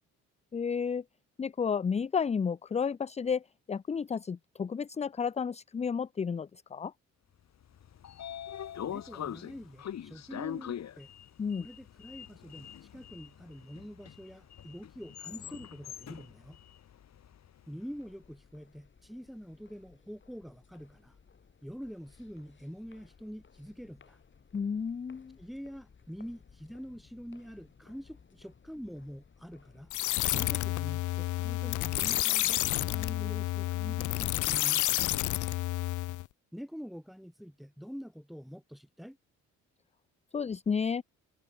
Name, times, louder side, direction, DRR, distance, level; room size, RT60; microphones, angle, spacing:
voice 1, 0.5-1.0 1.4-3.4 3.7-6.9 11.4-11.7 24.5-25.4 40.3-41.0, left 6 dB, 20° left, 0.5 m, -32 dB
Sliding door, 7.6-17.8, left 9 dB, 60° left, 3.9 m, -43 dB
voice 2, 8.9-11.1 11.6-16.6 17.7-21.1 21.6-24.2 25.4-29.9 30.3-35.2 36.5-39.2, equal, ahead, 3.9 m, -45 dB
sound 1, 17.9-36.2, left 6 dB, 40° left, 5.4 m, -60 dB
sound 2, 29.9-36.3, left 16 dB, 75° left, 0.7 m, -30 dB
cardioid pair, 90°, 30 cm